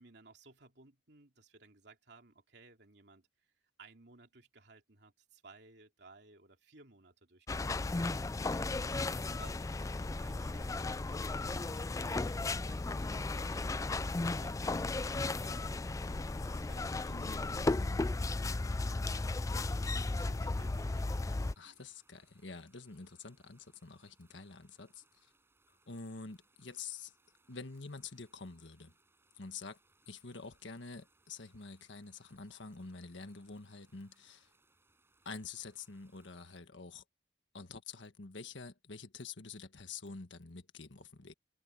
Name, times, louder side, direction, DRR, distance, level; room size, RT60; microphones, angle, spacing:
voice 1, 0.0-3.3 3.8-19.4 19.7-21.8, right 3 dB, 65° right, 3.1 m, -60 dB
sound 1, 7.5-21.5, left 2 dB, 20° left, 0.3 m, -35 dB
voice 2, 17.1-18.1 21.6-25.3 25.9-27.1 27.5-28.9 29.3-29.8 30.1-34.5 35.2-37.0 37.5-41.3, left 4 dB, 85° left, 1.5 m, -47 dB
sound 2, 18.9-36.6, right 2 dB, 15° right, 7.3 m, -72 dB
head